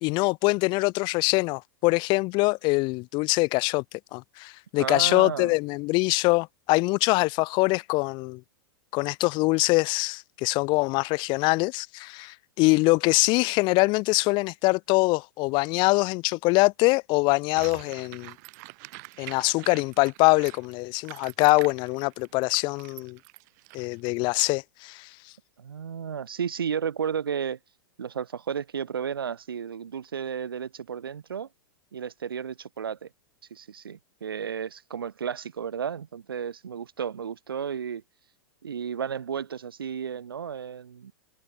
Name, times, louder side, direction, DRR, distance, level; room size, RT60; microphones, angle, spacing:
voice 1, 0.0-3.8 4.1-8.4 8.9-18.3 19.2-23.2 23.7-25.1, left 25 dB, 40° left, 0.8 m, -24 dB
voice 2, 4.8-5.5 25.6-27.6 28.0-31.5 31.9-33.1 33.5-38.0 38.6-41.1, right 7 dB, 90° right, 1.1 m, -33 dB
sound 1, 17.6-24.5, right 27 dB, 50° right, 5.2 m, -45 dB
hypercardioid pair, 115°, 12 cm